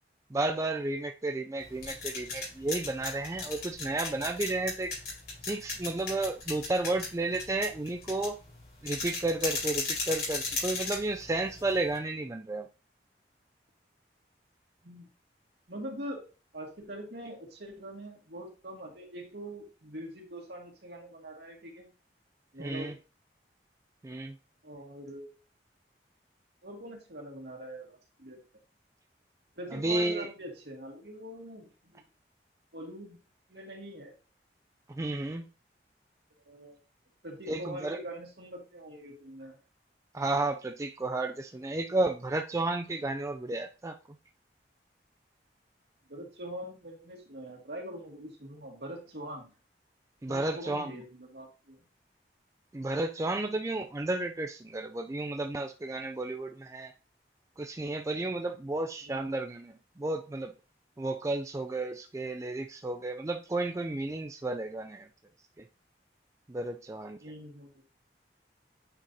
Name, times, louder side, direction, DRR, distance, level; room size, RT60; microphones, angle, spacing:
voice 1, 0.3-4.9 5.4-8.4 8.8-12.7 22.6-22.9 24.0-24.4 29.7-30.3 34.9-35.5 37.5-38.0 40.1-44.0 50.2-51.0 52.7-56.9 57.6-60.5 61.0-65.1 65.6-65.7 66.5-67.2, right 2 dB, 15° right, 0.3 m, -32 dB
sound 1, 1.6-12.0, left 4 dB, 55° left, 4.3 m, -36 dB
voice 2, 15.7-16.3 16.5-21.9 22.5-22.9 24.6-25.4 26.6-28.4 29.6-32.0 32.7-33.2 33.5-34.1 36.4-36.8 37.2-39.6 46.1-49.5 50.3-51.8 59.0-59.4 67.2-67.7, right 1 dB, 70° right, 2.1 m, -43 dB
9.0 x 5.5 x 2.7 m
head